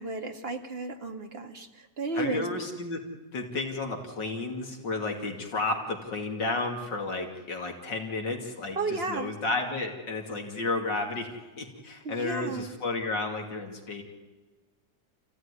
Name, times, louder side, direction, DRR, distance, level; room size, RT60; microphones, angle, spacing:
voice 1, 0.0-2.5 8.8-9.3 12.0-12.8, right 3 dB, 35° right, 4 dB, 2.2 m, -33 dB
voice 2, 2.1-3.0 3.3-14.0, left 3 dB, 75° left, 2 dB, 3.2 m, -32 dB
29.0 x 16.0 x 9.8 m, 1.3 s
omnidirectional pair, 1.9 m